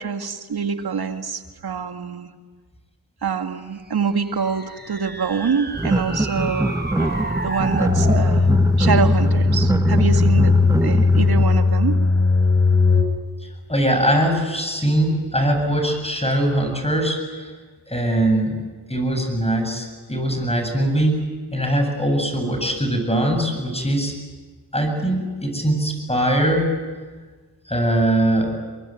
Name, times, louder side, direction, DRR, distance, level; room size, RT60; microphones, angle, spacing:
voice 1, 0.0-2.3 3.2-8.5 8.8-10.5 10.8-12.0, right 6 dB, 65° right, 6 dB, 2.1 m, -25 dB
sound 1, 4.0-8.3, right 2 dB, 25° right, 3.9 m, -32 dB
sound 2, 5.8-11.4, right 1 dB, 10° right, 0.8 m, -23 dB
sound 3, 7.9-13.0, left 4 dB, 40° left, 4.0 m, -17 dB
voice 2, 13.7-17.5 17.9-18.6 18.9-21.2 21.5-24.1 24.7-26.7 27.7-28.5, right 1 dB, 15° left, 5 dB, 8.0 m, -21 dB
24.0 x 23.0 x 9.2 m, 1.4 s
cardioid pair, 50°, 40 cm